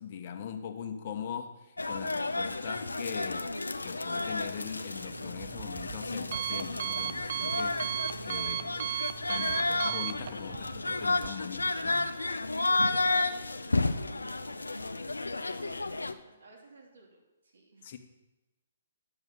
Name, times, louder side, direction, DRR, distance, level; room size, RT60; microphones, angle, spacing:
voice 1, 0.0-1.5 1.9-3.5 3.8-7.8 8.2-8.8 9.3-12.0 17.8-18.0, left 8 dB, 45° left, 5 dB, 1.1 m, -41 dB
sound 1, 1.8-16.1, left 2 dB, 90° left, 0.6 m, -32 dB
Alarm, 4.9-11.3, right 10 dB, 50° right, 0.5 m, -36 dB
voice 2, 12.7-14.6 14.8-17.9, right 3 dB, 75° right, -1 dB, 2.7 m, -56 dB
11.0 x 7.1 x 5.4 m, 1.1 s
figure-of-eight pair, 130°, 0 cm